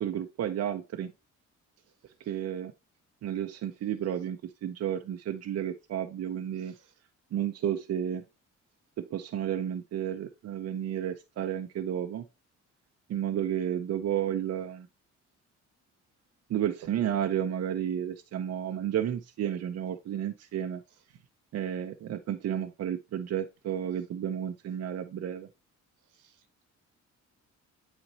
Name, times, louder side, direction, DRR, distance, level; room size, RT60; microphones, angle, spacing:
voice 1, 0.0-1.1 2.3-2.7 3.2-6.7 7.3-8.2 9.0-12.2 13.1-14.9 16.5-20.8 21.5-25.5, right 10 dB, 60° right, 0.7 m, -32 dB
voice 2, 6.6-6.9 16.8-17.0 21.1-21.2 26.1-26.6, right 8 dB, 80° right, 1.2 m, -52 dB
8.9 x 4.3 x 2.8 m
cardioid pair, 90°, 30 cm